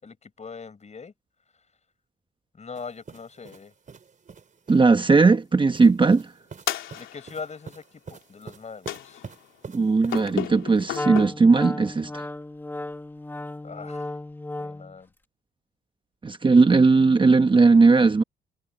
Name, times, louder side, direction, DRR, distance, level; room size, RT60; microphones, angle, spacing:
voice 1, 0.0-1.1 2.5-3.7 6.9-9.2 13.6-14.1 14.6-15.1, left 5 dB, 35° left, 6.2 m, -41 dB
sound 1, 2.7-4.9 5.7-10.4, right 5 dB, 40° right, 3.6 m, -45 dB
voice 2, 4.7-6.3 9.7-12.2 16.2-18.2, right 4 dB, 25° right, 1.1 m, -18 dB
sound 2, 6.7-7.5 8.9-9.5 10.1-11.2, left 12 dB, 80° left, 3.1 m, -33 dB
Wind instrument woodwind instrument, 10.9-15.0, left 2 dB, 10° left, 1.6 m, -34 dB
cardioid pair, 90°, 20 cm